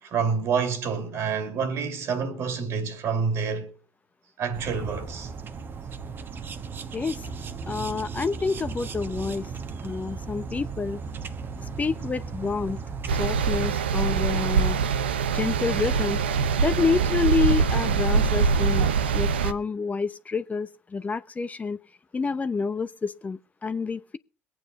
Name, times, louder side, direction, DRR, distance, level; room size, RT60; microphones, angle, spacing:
voice 1, 0.0-3.7 4.4-5.3, right 6 dB, 55° right, 2.6 m, -28 dB
sound 1, 4.5-13.7, right 5 dB, 40° right, 1.3 m, -36 dB
voice 2, 6.9-7.2 7.7-9.5 9.8-11.0 11.6-12.8 13.1-14.8 15.3-16.2 16.6-18.9 19.1-21.8 22.1-24.2, left 4 dB, 25° left, 0.8 m, -28 dB
sound 2, 13.1-19.5, right 5 dB, 85° right, 0.6 m, -23 dB
22.0 x 9.0 x 4.1 m
hypercardioid pair, 60°, 6 cm